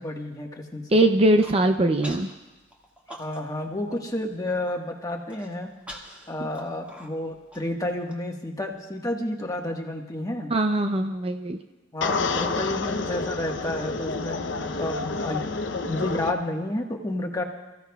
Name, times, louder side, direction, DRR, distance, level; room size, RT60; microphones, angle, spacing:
voice 1, 0.0-1.0 3.2-5.7 6.3-10.5 11.9-14.4 14.7-17.4, left 1 dB, 20° left, 1 dB, 1.4 m, -31 dB
voice 2, 0.9-2.3 10.5-11.6, right 1 dB, 30° right, 7 dB, 0.5 m, -21 dB
Human voice, 1.1-1.6 2.0-2.3 2.7-3.6 3.9-4.0 4.4-4.7 5.3-8.1, equal, 5° right, 1.8 m, -43 dB
sound 1, 12.0-16.3, left 3 dB, 70° left, 0.8 m, -29 dB
28.0 x 15.0 x 2.3 m, 1.1 s
head